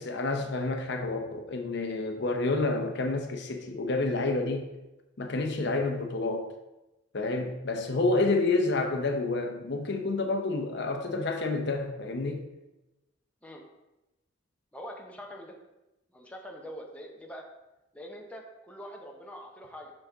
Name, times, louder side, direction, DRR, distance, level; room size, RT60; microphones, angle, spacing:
voice 1, 0.0-4.7 5.2-6.5 7.1-12.4, left 3 dB, 60° left, 4 dB, 0.7 m, -29 dB
voice 2, 14.7-15.6 16.1-17.4 17.9-19.9, equal, 5° left, 0 dB, 0.8 m, -44 dB
6.2 x 5.9 x 3.6 m, 0.97 s
head